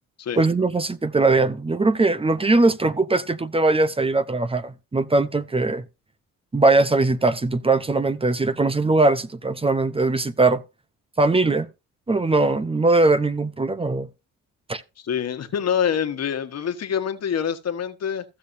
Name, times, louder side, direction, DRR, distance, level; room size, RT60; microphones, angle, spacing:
voice 1, 0.4-5.8 6.5-10.6 11.2-11.7 12.1-14.1 14.7-14.8, right 3 dB, 20° right, 0.8 m, -20 dB
voice 2, 15.0-18.2, left 8 dB, 55° left, 1.5 m, -26 dB
15.0 x 6.6 x 2.7 m
cardioid pair, 90°, 30 cm